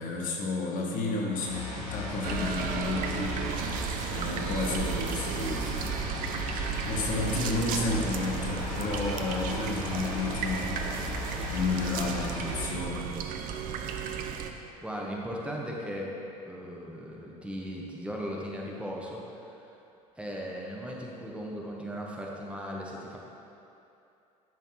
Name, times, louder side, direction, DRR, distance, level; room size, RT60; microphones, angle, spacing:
voice 1, 0.0-3.3 4.1-5.9 6.5-10.8 11.5-13.1, left 3 dB, 45° left, -1 dB, 1.1 m, -32 dB
sound 1, 1.3-12.6, left 3 dB, 85° left, 1.3 m, -37 dB
sound 2, 2.2-14.5, right 7 dB, 45° right, 0.6 m, -34 dB
Crowd, 8.1-12.9, left 2 dB, 15° left, 0.7 m, -47 dB
voice 2, 14.8-16.1 16.4-19.6 20.2-23.2, equal, 5° right, -3 dB, 1.1 m, -37 dB
10.5 x 5.7 x 3.1 m, 2.8 s
figure-of-eight pair, 65°, 20 cm